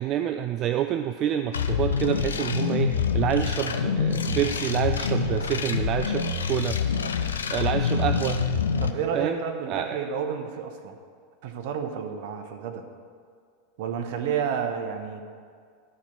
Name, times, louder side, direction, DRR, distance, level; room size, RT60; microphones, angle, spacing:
voice 1, 0.0-6.8 7.5-8.4 9.1-9.4 9.7-10.0, right 11 dB, 45° right, 9 dB, 0.4 m, -27 dB
sound 1, 1.5-8.9, left 6 dB, 85° left, 0.5 m, -26 dB
voice 2, 8.8-11.0 11.4-12.8 13.8-15.2, right 7 dB, 60° right, 6 dB, 1.0 m, -30 dB
12.5 x 4.5 x 6.7 m, 2.1 s
hypercardioid pair, 90°, 0 cm